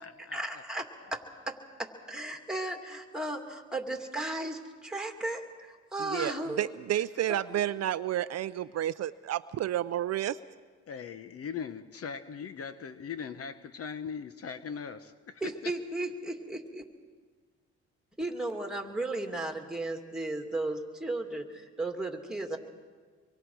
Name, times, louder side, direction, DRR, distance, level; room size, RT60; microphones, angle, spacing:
voice 1, 0.3-6.7 7.3-7.6 15.4-16.8 18.2-22.6, right 2 dB, ahead, 3 dB, 2.3 m, -35 dB
voice 2, 6.0-10.4, right 12 dB, 60° right, 13 dB, 0.5 m, -31 dB
voice 3, 10.9-15.7, left 6 dB, 50° left, 11 dB, 0.9 m, -40 dB
25.5 x 23.5 x 4.7 m, 1.5 s
cardioid pair, 90°, 30 cm